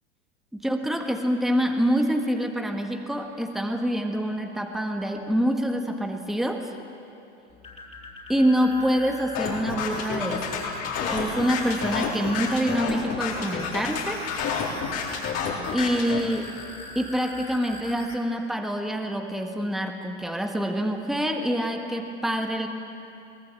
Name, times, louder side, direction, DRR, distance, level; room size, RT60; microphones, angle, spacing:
voice 1, 0.5-6.7 8.3-10.5 11.0-14.2 15.7-16.5 16.9-22.7, equal, ahead, 4 dB, 1.6 m, -26 dB
sound 1, 7.5-18.2, left 2 dB, 20° left, 4.0 m, -42 dB
sound 2, 9.3-16.2, left 6 dB, 45° left, 4.1 m, -29 dB
23.0 x 19.0 x 7.6 m, 2.7 s
hypercardioid pair, 95°, 35 cm